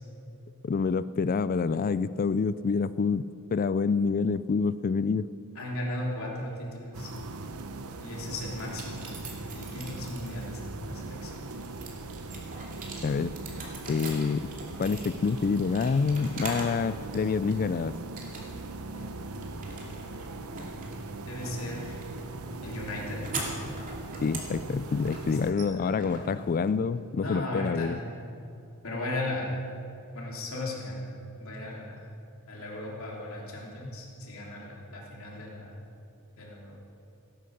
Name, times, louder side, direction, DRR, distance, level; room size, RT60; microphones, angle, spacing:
voice 1, 0.6-3.2 3.5-5.3 13.0-13.3 13.9-14.5 14.8-18.0 24.2-28.0, left 5 dB, 40° left, 15 dB, 0.3 m, -27 dB
voice 2, 5.5-7.1 8.0-11.4 18.9-19.8 20.1-20.8 21.3-22.0 22.6-23.2 25.1-25.2 25.5-26.7 27.2-27.9 28.8-29.6 30.1-32.0 32.5-35.7 36.4-36.7, left 1 dB, 65° left, -3 dB, 3.3 m, -37 dB
sound 1, 6.9-25.5, right 3 dB, 75° right, 0.8 m, -40 dB
sound 2, 8.6-10.6 11.1-16.8 17.1-17.7 18.2-18.8 19.0-27.0, right 3 dB, 40° right, 2.6 m, -42 dB
17.0 x 9.6 x 6.6 m, 2.7 s
head